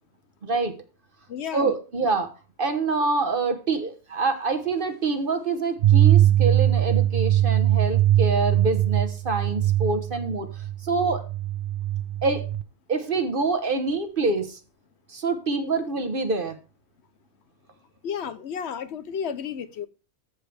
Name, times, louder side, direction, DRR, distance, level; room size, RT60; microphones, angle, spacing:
voice 1, 0.4-0.7 1.5-2.3 2.6-11.2 12.2-12.4 12.9-14.6 15.1-16.6, right 3 dB, 50° right, 1.3 m, -26 dB
voice 2, 1.3-1.7 18.0-19.9, left 7 dB, 70° left, 1.0 m, -32 dB
sound 1, 5.8-12.6, right 12 dB, 70° right, 0.8 m, -21 dB
14.0 x 5.0 x 3.3 m
omnidirectional pair, 1.2 m